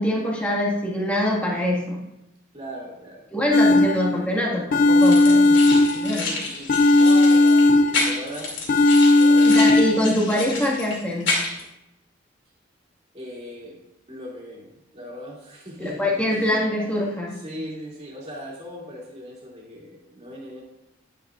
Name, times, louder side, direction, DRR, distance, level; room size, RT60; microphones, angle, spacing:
voice 1, 0.0-2.0 3.3-6.2 9.4-11.3 15.8-17.4, left 1 dB, 5° left, -4 dB, 1.8 m, -24 dB
voice 2, 2.5-3.3 6.1-8.5 9.1-9.8 13.1-13.8 14.1-20.6, equal, 30° right, -4 dB, 2.5 m, -39 dB
sound 1, 3.5-4.3 4.7-6.3 6.7-8.3 8.7-10.1, left 2 dB, 45° left, 0.3 m, -16 dB
sound 2, 5.0-11.6, left 3 dB, 70° left, 2.6 m, -30 dB
10.5 x 9.8 x 2.5 m, 0.88 s
head